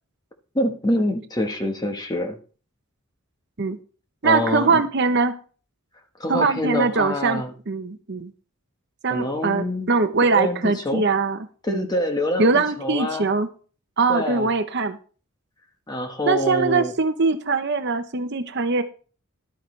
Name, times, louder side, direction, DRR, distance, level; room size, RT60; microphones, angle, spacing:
voice 1, 0.5-2.4 4.2-4.8 6.2-7.5 9.1-9.9 10.2-11.0 11.6-13.3 14.1-14.5 15.9-16.9, left 1 dB, 20° left, 4 dB, 1.3 m, -25 dB
voice 2, 4.2-5.3 6.3-8.3 9.0-11.4 11.7-11.9 12.4-13.5 14.0-15.0 16.3-18.8, right 4 dB, 50° right, 9 dB, 0.8 m, -22 dB
11.5 x 9.3 x 3.3 m, 0.40 s
head